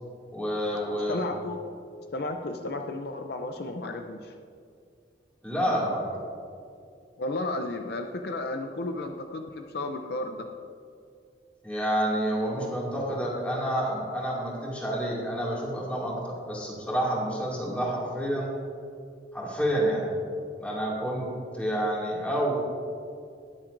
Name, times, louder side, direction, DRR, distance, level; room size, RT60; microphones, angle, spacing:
voice 1, 0.3-1.2 5.4-6.1 11.6-18.5 19.3-20.1 20.6-21.3 21.5-22.5, equal, 10° left, -5 dB, 2.3 m, -29 dB
voice 2, 1.1-1.6 2.1-4.3 7.2-10.5, left 2 dB, 60° left, 5 dB, 0.5 m, -33 dB
19.5 x 7.4 x 2.6 m, 2.4 s
head